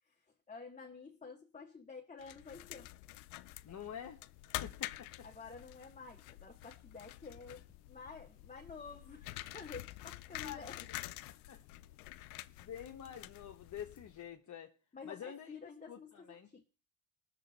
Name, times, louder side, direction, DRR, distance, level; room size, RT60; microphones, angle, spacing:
voice 1, 0.0-2.9 3.7-3.8 5.2-10.9 14.9-16.6, left 4 dB, 15° left, 1.4 m, -51 dB
sound 1, 2.2-14.3, left 18 dB, 90° left, 0.6 m, -48 dB
voice 2, 3.6-4.2 4.5-5.3 10.4-10.7 11.3-11.6 12.6-14.7 15.0-15.5 15.9-16.5, left 9 dB, 40° left, 1.2 m, -47 dB
19.0 x 7.0 x 4.2 m
supercardioid pair, 70°, 43 cm